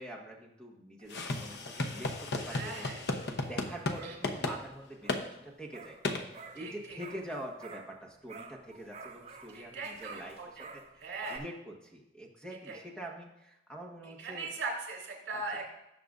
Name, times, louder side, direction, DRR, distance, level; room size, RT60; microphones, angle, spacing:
voice 1, 0.0-2.9 3.5-5.2 5.4-6.0 6.3-10.8 11.3-14.6 15.3-15.4, right 1 dB, 5° left, -1 dB, 1.4 m, -45 dB
sound 1, 1.0-8.0 8.3-11.4, right 4 dB, 35° right, 0.8 m, -52 dB
sound 2, 1.1-4.0 4.2-4.6 5.1-5.2 6.0-6.2, left 2 dB, 60° left, 0.9 m, -34 dB
voice 2, 2.5-3.0 3.4-3.5 4.0-4.1 6.6-7.0 9.5-10.7 11.0-11.4 12.7-12.8 14.0-15.7, right 3 dB, 70° right, 0 dB, 3.4 m, -40 dB
18.0 x 7.0 x 2.6 m, 0.87 s
head